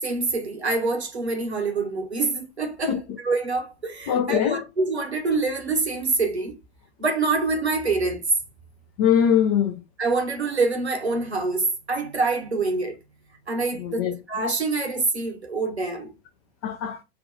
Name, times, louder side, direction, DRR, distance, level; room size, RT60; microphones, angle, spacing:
voice 1, 0.0-3.0 3.2-6.6 7.0-8.2 10.0-13.0 13.5-14.0 14.3-16.1, right 3 dB, 85° right, 1.1 m, -25 dB
voice 2, 4.1-4.7 9.0-9.8 13.8-14.2 16.6-17.0, left 9 dB, 30° left, 0.3 m, -22 dB
3.4 x 2.2 x 3.9 m
figure-of-eight pair, 95°, 32 cm